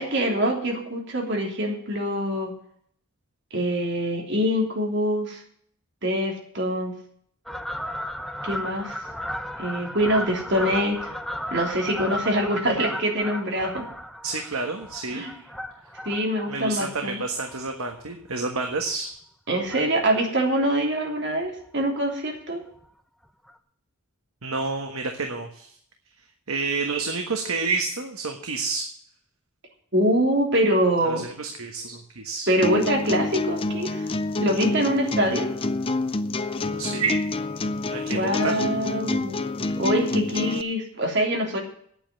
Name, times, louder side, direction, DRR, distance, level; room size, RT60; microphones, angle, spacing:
voice 1, 0.0-2.5 3.5-5.4 6.0-6.9 8.4-9.0 9.6-11.0 11.5-13.8 15.1-15.3 16.0-17.2 19.5-22.6 29.9-31.2 32.5-34.1 34.4-35.5 38.1-39.3 39.8-41.6, equal, 50° right, 0 dB, 3.3 m, -24 dB
Fowl, 7.5-18.3 18.7-18.9 19.7-20.2 20.5-20.6 20.8-20.9 21.2-21.3 21.7-21.8 22.8-22.9 23.5-23.6, equal, ahead, 0.8 m, -35 dB
voice 2, 14.2-15.2 16.5-19.2 24.4-25.7 26.5-28.8 31.0-32.5 36.7-37.2 37.9-38.5, right 4 dB, 75° right, 4 dB, 1.4 m, -29 dB
sound 1, 32.6-40.6, left 2 dB, 25° left, 0.5 m, -27 dB
9.0 x 8.8 x 8.5 m, 0.63 s
head